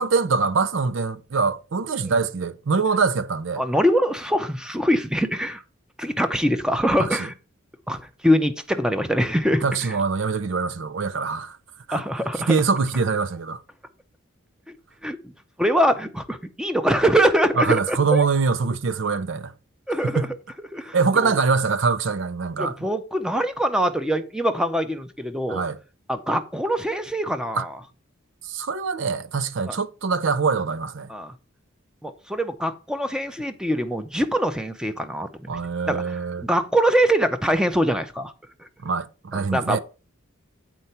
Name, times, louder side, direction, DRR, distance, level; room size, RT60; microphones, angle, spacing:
voice 1, 0.0-3.6 7.0-7.1 9.6-11.6 11.9-12.0 12.5-13.6 17.6-19.5 20.0-20.3 20.9-22.8 25.5-25.8 27.6-27.7 28.5-31.1 35.5-36.5 38.8-39.8, right 4 dB, 65° right, 0.5 m, -23 dB
voice 2, 3.6-5.6 6.0-7.3 7.9-10.0 11.9-12.5 14.7-14.8 15.0-15.2 15.6-18.2 19.9-20.3 20.7-21.4 22.6-25.6 26.1-27.8 29.7-29.8 31.1-31.3 32.0-35.6 35.9-36.2 36.4-38.3 38.6-38.7 39.3-39.8, equal, 5° right, 0.6 m, -23 dB
8.0 x 4.5 x 5.6 m
head